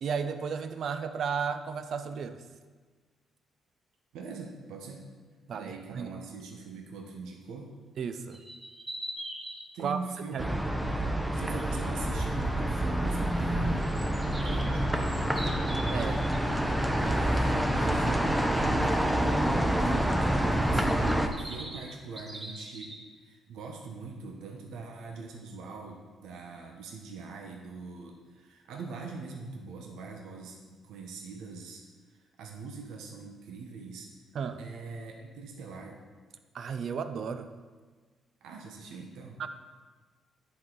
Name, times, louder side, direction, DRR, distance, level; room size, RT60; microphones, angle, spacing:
voice 1, 0.0-2.4 5.5-6.4 8.0-8.4 9.8-10.0 10.3-10.4 15.9-16.2 34.3-34.6 36.5-37.5 39.4-39.5, right 6 dB, 60° right, 9 dB, 0.5 m, -34 dB
voice 2, 4.1-5.1 5.5-7.7 9.7-10.5 11.3-15.6 17.0-22.9 23.2-31.8 32.1-34.1 34.6-36.0 38.4-39.4, right 4 dB, 85° right, 1 dB, 0.8 m, -42 dB
sound 1, 8.3-9.6 13.8-16.4 20.7-23.0, right 1 dB, 25° right, 1.6 m, -42 dB
sound 2, 10.4-21.3, right 1 dB, 5° right, 0.6 m, -27 dB
10.0 x 4.1 x 3.8 m, 1.4 s
cardioid pair, 90°, 0 cm